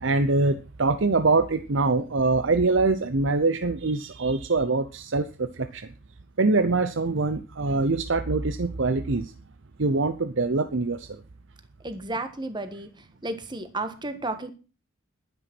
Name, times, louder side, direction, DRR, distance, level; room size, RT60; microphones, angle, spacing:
voice 1, 0.0-5.9 6.4-9.3 9.8-11.2, right 3 dB, 60° right, 11 dB, 0.7 m, -24 dB
voice 2, 11.8-14.5, right 2 dB, 20° right, 9 dB, 1.4 m, -33 dB
11.0 x 10.0 x 6.1 m, 0.34 s
head